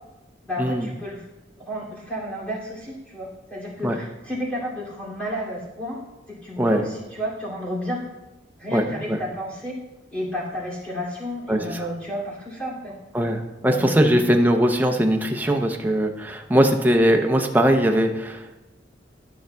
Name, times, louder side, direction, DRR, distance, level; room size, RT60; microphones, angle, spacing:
voice 1, 0.5-1.2 1.6-6.0 6.3-8.0 8.6-9.8 10.1-12.9 13.6-14.3, equal, 5° left, -7 dB, 2.5 m, -32 dB
voice 2, 11.5-11.8 13.1-18.6, equal, 10° right, 3 dB, 0.6 m, -20 dB
13.0 x 6.4 x 2.3 m, 1.1 s
head